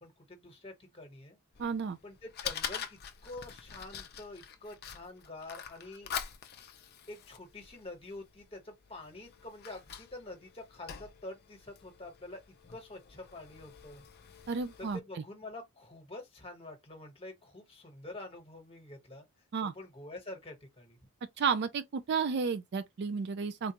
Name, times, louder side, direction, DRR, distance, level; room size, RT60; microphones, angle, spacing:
voice 1, 0.0-1.4 2.0-6.2 7.1-12.4 12.7-14.0 14.8-19.3 19.6-21.0, left 2 dB, 25° left, 1.2 m, -47 dB
Fire, 1.5-15.0, left 8 dB, 45° left, 0.5 m, -45 dB
voice 2, 1.6-2.0 14.5-15.0 19.5-19.7 21.4-23.7, right 5 dB, 50° right, 0.3 m, -32 dB
3.8 x 2.3 x 2.8 m
head